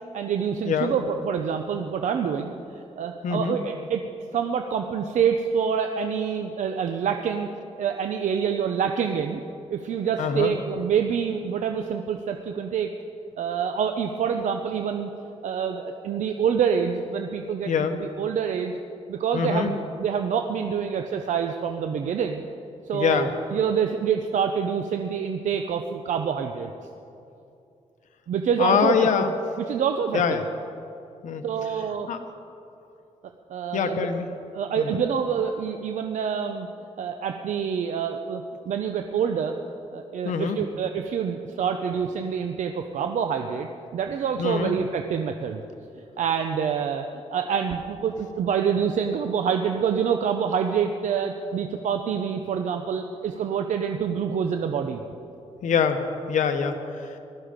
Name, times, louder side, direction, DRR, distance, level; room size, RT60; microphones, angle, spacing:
voice 1, 0.1-2.5 3.0-4.0 4.3-7.5 7.8-9.4 9.7-12.9 13.4-15.1 15.4-18.7 19.1-22.5 22.9-26.7 28.3-29.1 29.7-30.4 31.4-32.1 33.5-34.1 34.5-36.7 37.0-39.5 39.9-43.7 43.9-45.6 46.2-47.0 47.3-55.0, right 7 dB, 80° right, 5 dB, 0.7 m, -26 dB
voice 2, 3.2-3.6 10.2-10.5 17.7-18.0 19.3-19.7 22.9-23.3 28.6-29.3 30.1-30.4 31.2-31.4 32.1-32.2 33.7-34.3 34.8-35.0 40.2-40.6 44.4-44.7 55.6-57.2, left 6 dB, 85° left, 7 dB, 1.1 m, -24 dB
19.0 x 13.0 x 5.2 m, 2.7 s
wide cardioid pair, 130°, 12 cm